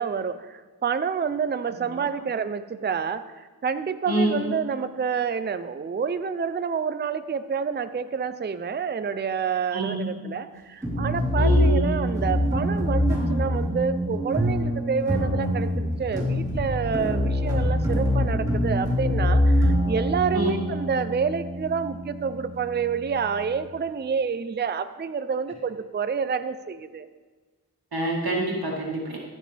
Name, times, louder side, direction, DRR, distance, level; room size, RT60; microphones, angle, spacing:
voice 1, 0.0-27.1, right 6 dB, 30° right, 11 dB, 0.4 m, -28 dB
voice 2, 4.1-4.5 9.7-10.1 11.4-12.0 20.3-20.6 27.9-29.2, right 1 dB, 70° right, -2 dB, 1.8 m, -26 dB
sound 1, 10.8-23.6, equal, 10° right, 3.4 m, -25 dB
14.0 x 7.4 x 3.4 m, 1.4 s
wide cardioid pair, 60°, 38 cm